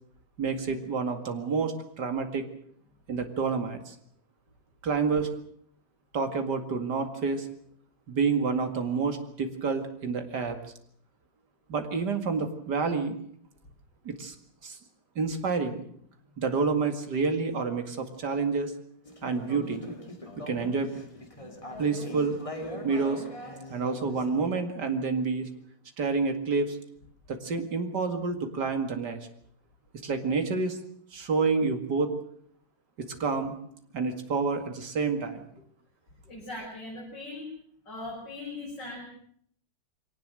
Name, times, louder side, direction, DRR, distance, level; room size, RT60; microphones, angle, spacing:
voice 1, 0.4-2.5 3.1-3.9 4.8-5.3 6.1-7.5 8.1-10.6 11.7-13.2 14.0-14.3 14.6-14.8 15.2-15.8 16.4-18.7 19.2-19.8 20.5-20.9 21.8-22.4 22.8-23.2 23.7-25.5 26.0-26.8 27.3-29.2 30.0-30.8 31.1-32.1 33.2-33.6 33.9-35.4, right 4 dB, 65° right, 7 dB, 2.8 m, -28 dB
Conversation / Chatter, 19.1-24.4, equal, 20° left, 2.5 m, -41 dB
voice 2, 36.3-37.5 37.8-39.0, left 2 dB, 75° left, -4 dB, 6.7 m, -39 dB
23.0 x 18.5 x 7.6 m, 0.65 s
omnidirectional pair, 1.9 m